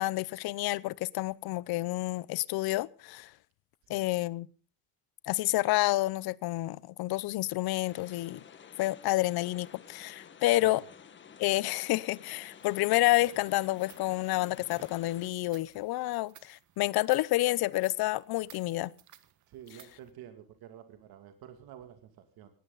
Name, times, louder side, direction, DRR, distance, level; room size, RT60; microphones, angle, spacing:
voice 1, 0.0-3.3 3.9-4.5 5.3-8.4 8.8-10.8 11.4-18.9, left 18 dB, 90° left, 0.7 m, -29 dB
sound 1, 7.8-15.3, left 7 dB, 30° left, 1.5 m, -52 dB
sound 2, 12.6-20.1, right 11 dB, 50° right, 1.4 m, -58 dB
voice 2, 19.5-22.5, right 10 dB, 80° right, 2.5 m, -50 dB
19.5 x 18.0 x 4.0 m
cardioid pair, 175°, 36 cm